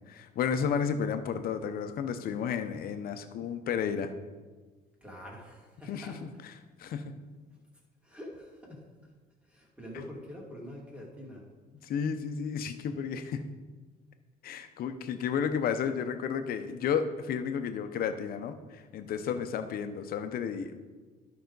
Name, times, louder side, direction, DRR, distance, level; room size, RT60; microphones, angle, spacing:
voice 1, 0.1-4.1 5.9-6.1 6.8-7.1 11.8-13.4 14.4-20.8, left 7 dB, 60° left, 9 dB, 0.7 m, -32 dB
voice 2, 5.0-6.2 7.5-7.6 8.0-9.1 9.4-11.4 19.2-19.4, left 1 dB, 5° right, -3 dB, 2.3 m, -46 dB
11.5 x 5.6 x 4.0 m, 1.4 s
cardioid pair, 110°, 17 cm